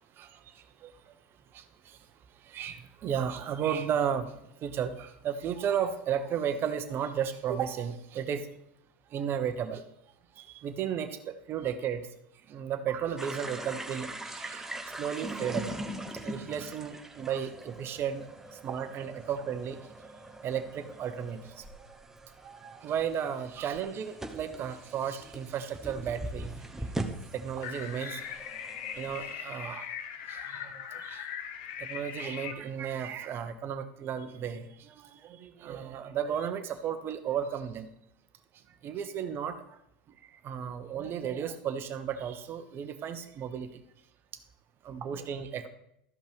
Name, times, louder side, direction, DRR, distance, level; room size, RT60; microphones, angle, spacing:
voice 1, 2.5-4.3 4.6-8.5 9.1-9.8 10.4-12.1 12.5-14.7 15.0-15.8 16.2-18.3 18.6-19.8 20.4-21.6 22.4-26.5 27.3-28.3 29.0-29.9 30.3-31.3 31.8-37.9 38.8-39.6 40.4-43.7 44.8-45.7, right 8 dB, 40° right, 9 dB, 1.2 m, -34 dB
sound 1, 13.2-29.3, right 1 dB, 5° right, 1.2 m, -41 dB
sound 2, 27.6-32.5, left 9 dB, 65° left, 0.9 m, -40 dB
13.5 x 5.4 x 5.2 m, 0.77 s
hypercardioid pair, 90°, 6 cm